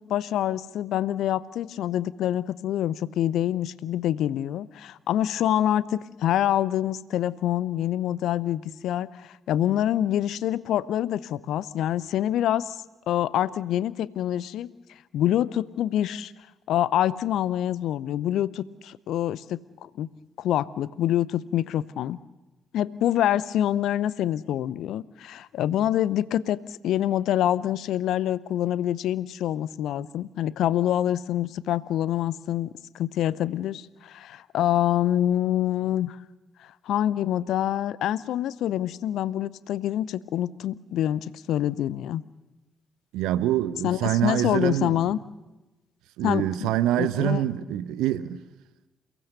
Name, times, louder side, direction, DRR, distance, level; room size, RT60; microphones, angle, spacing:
voice 1, 0.1-14.7 15.1-16.3 16.7-20.1 20.4-22.2 22.7-36.2 36.6-42.2 43.8-45.2 46.2-47.4, left 11 dB, 60° left, 0.7 m, -26 dB
voice 2, 43.1-44.9 46.2-48.4, right 13 dB, 65° right, 0.8 m, -25 dB
29.0 x 18.0 x 6.7 m
figure-of-eight pair, 40°, 0 cm